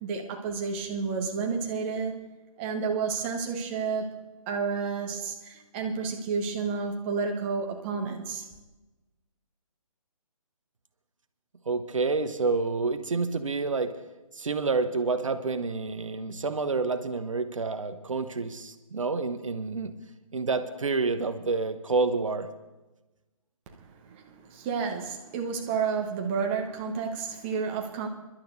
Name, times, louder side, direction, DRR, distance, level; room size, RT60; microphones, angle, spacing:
voice 1, 0.0-2.2 2.6-4.1 4.5-8.5 24.1-24.2 24.5-28.1, right 5 dB, 20° right, 1.0 m, -30 dB
voice 2, 11.7-13.9 14.3-19.9 20.3-22.5, right 4 dB, 65° right, 1.0 m, -28 dB
28.5 x 11.5 x 2.7 m
figure-of-eight pair, 140°, 18 cm